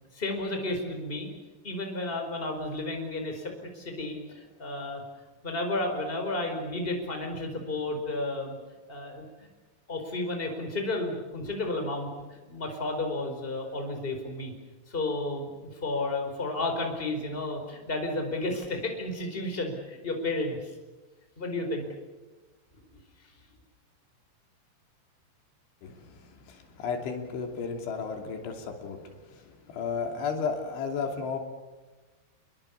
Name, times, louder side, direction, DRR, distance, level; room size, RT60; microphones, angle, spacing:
voice 1, 0.1-1.3 1.6-5.0 5.4-8.6 8.9-9.5 9.9-14.5 14.9-20.7 21.4-21.9, left 2 dB, 10° left, 3 dB, 4.4 m, -32 dB
voice 2, 25.8-29.0 29.3-31.4, left 5 dB, 85° left, 3 dB, 5.3 m, -33 dB
29.0 x 22.0 x 7.1 m, 1.2 s
omnidirectional pair, 5.3 m